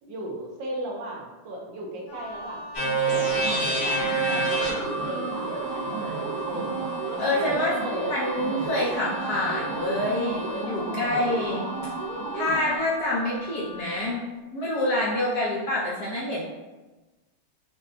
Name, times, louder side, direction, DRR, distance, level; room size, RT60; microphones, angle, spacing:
voice 1, 0.0-4.0 4.3-6.8 7.1-8.1, right 1 dB, 70° right, -1 dB, 1.2 m, -36 dB
Wind instrument woodwind instrument, 2.1-14.2, left 3 dB, 90° left, 1.6 m, -42 dB
sound 1, 2.7-10.6, right 3 dB, 40° left, 1.1 m, -30 dB
sound 2, 3.1-12.9, right 3 dB, 85° right, 1.7 m, -33 dB
voice 2, 7.2-7.7 8.1-11.6 12.3-14.2 14.5-16.5, left 1 dB, 65° left, -6 dB, 0.9 m, -27 dB
5.3 x 2.1 x 2.6 m, 1.1 s
omnidirectional pair, 2.3 m